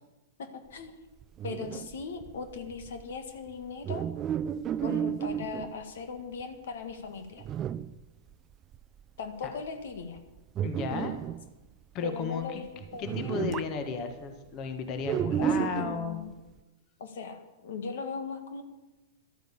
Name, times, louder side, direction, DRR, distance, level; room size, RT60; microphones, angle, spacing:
voice 1, 0.4-0.9 1.4-4.1 4.8-7.5 9.2-10.2 12.0-13.6 15.4-16.3 17.0-18.6, left 5 dB, 75° left, 7 dB, 1.8 m, -39 dB
sound 1, 1.2-5.8 6.4-6.5 6.9-7.0 7.4-8.0 8.3-8.4 8.6-9.0 9.4-9.7 10.2-11.5 12.4-12.5 12.8-13.8 15.0-16.1, right 9 dB, 30° right, 0.4 m, -32 dB
voice 2, 10.6-11.2 11.9-12.6 13.0-16.3, left 5 dB, 40° left, 7 dB, 1.7 m, -34 dB
12.0 x 9.1 x 8.6 m, 1.1 s
hypercardioid pair, 125°, 0 cm